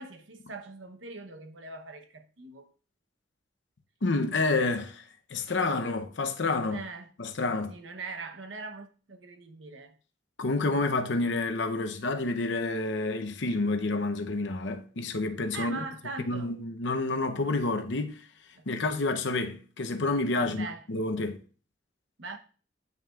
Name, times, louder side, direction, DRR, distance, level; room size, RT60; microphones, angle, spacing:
voice 1, 0.0-2.7 6.7-7.1 7.7-9.9 15.5-16.5 18.5-18.6 20.4-20.8 22.2-22.4, right 3 dB, 75° right, 0.9 m, -41 dB
voice 2, 4.0-5.0 5.3-6.8 7.2-7.8 10.4-15.8 16.2-18.2 18.7-21.4, left 3 dB, 70° left, 0.8 m, -29 dB
9.2 x 5.9 x 2.4 m
head